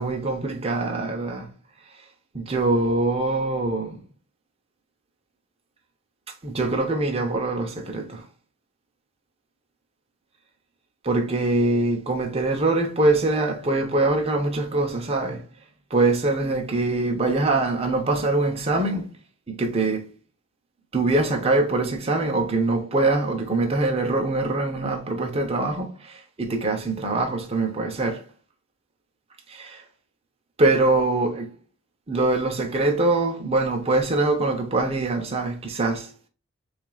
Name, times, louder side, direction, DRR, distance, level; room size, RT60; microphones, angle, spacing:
voice 1, 0.0-1.5 2.3-4.0 6.4-8.2 11.0-15.4 15.9-19.1 19.5-20.1 20.9-28.2 29.5-29.8 30.6-31.5 32.1-36.1, right 2 dB, 30° right, 0.6 m, -23 dB
7.1 x 2.5 x 2.3 m
head